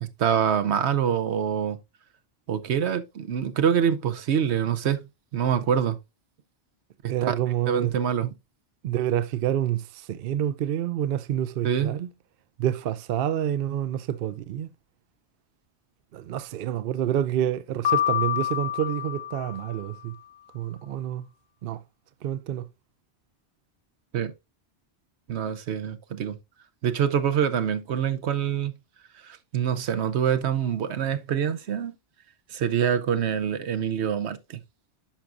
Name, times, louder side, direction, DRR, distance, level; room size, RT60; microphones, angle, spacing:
voice 1, 0.0-1.8 2.5-5.0 5.3-6.0 7.0-7.3 7.7-8.3 11.6-11.9 24.1-24.3 25.3-26.4 26.8-28.7 29.2-31.9 32.5-34.6, right 8 dB, 80° right, 1.0 m, -25 dB
voice 2, 7.1-7.9 8.2-8.3 8.8-12.1 12.6-14.7 16.1-20.1 20.5-21.3 21.6-21.8 22.2-22.7, right 11 dB, 65° right, 0.7 m, -28 dB
Piano, 17.9-20.0, left 11 dB, 70° left, 1.0 m, -27 dB
10.5 x 5.9 x 2.5 m
omnidirectional pair, 1.1 m